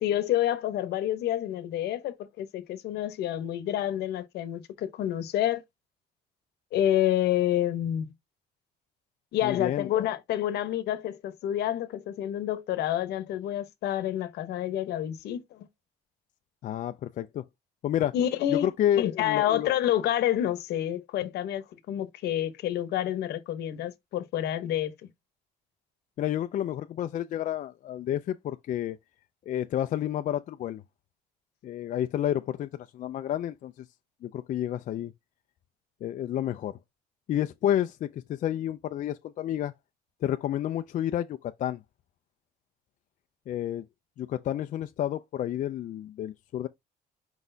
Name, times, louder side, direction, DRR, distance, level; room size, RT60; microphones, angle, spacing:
voice 1, 0.0-5.6 6.7-8.1 9.3-15.7 18.1-18.7 18.9-24.9, left 12 dB, 75° left, 0.9 m, -28 dB
voice 2, 9.4-9.9 16.6-17.4 17.8-18.1 18.5-19.7 26.2-29.0 29.5-30.8 31.6-33.9 34.2-35.1 36.0-36.8 37.3-39.7 40.2-41.8 43.5-43.8 44.2-46.7, left 11 dB, 50° left, 0.4 m, -30 dB
4.9 x 4.0 x 2.7 m
cardioid pair, 110°, 17 cm